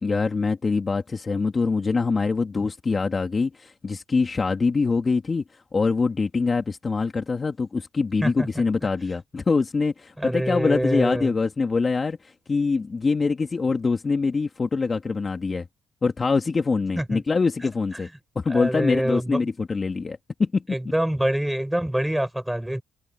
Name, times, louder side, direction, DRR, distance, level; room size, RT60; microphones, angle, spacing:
voice 1, 0.0-15.7 16.0-18.1 18.4-20.8, left 4 dB, 30° left, 2.4 m, -24 dB
voice 2, 10.2-11.3 17.0-17.2 18.5-19.4 20.7-22.8, right 1 dB, 5° right, 7.1 m, -25 dB
cardioid pair, 90°, 0 cm